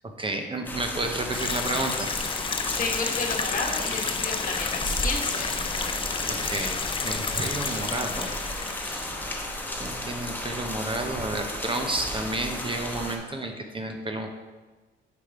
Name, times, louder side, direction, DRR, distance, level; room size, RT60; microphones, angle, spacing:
voice 1, 0.2-2.3 6.3-8.3 8.9-9.1 9.8-14.3, right 2 dB, 25° right, 4 dB, 0.7 m, -31 dB
sound 1, 0.6-13.2, left 1 dB, 10° left, 0.9 m, -34 dB
sound 2, 1.3-9.1, left 5 dB, 25° left, 0.4 m, -31 dB
voice 2, 2.8-5.5, left 3 dB, 45° left, 2 dB, 1.2 m, -31 dB
5.1 x 5.0 x 4.6 m, 1.3 s
cardioid pair, 90°, 20 cm